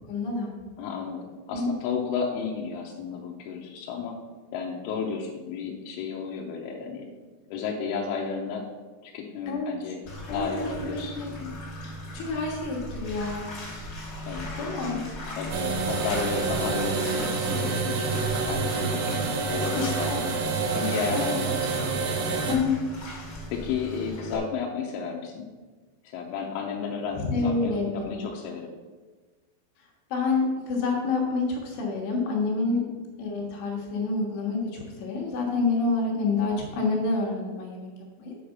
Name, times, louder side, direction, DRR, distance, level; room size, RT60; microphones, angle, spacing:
voice 1, 0.1-0.5 1.5-1.7 9.5-9.9 10.3-11.3 12.1-13.5 14.6-15.1 19.7-20.3 21.1-21.4 22.5-22.8 27.1-28.3 30.1-32.8 33.2-37.9 38.2-38.3, left 3 dB, 70° left, -1 dB, 3.3 m, -28 dB
voice 2, 0.8-4.2 4.5-7.1 7.5-8.6 9.0-10.0 10.3-11.6 14.2-14.5 14.8-15.1 15.4-20.3 20.7-22.5 23.5-25.5 26.0-28.7 32.7-33.0 36.2-36.3, left 6 dB, 85° left, -1 dB, 3.2 m, -33 dB
Bathtub (filling or washing), 10.1-24.4, left 1 dB, 35° left, 2.0 m, -38 dB
sound 1, 15.5-22.6, right 4 dB, 75° right, 3.1 m, -28 dB
8.7 x 5.1 x 6.5 m, 1.3 s
omnidirectional pair, 5.7 m